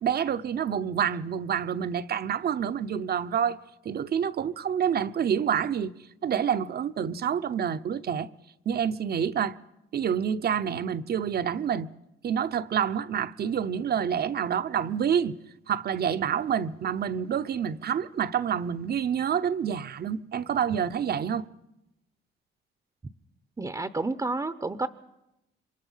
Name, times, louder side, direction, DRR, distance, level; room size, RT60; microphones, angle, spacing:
voice 1, 0.0-3.6 3.8-5.9 6.2-8.3 8.7-9.6 9.9-11.9 12.2-15.3 15.7-21.5, right 8 dB, 50° right, 0.9 m, -28 dB
voice 2, 23.6-24.9, right 3 dB, 20° right, 0.8 m, -30 dB
27.5 x 24.0 x 5.7 m
cardioid pair, 90°, 20 cm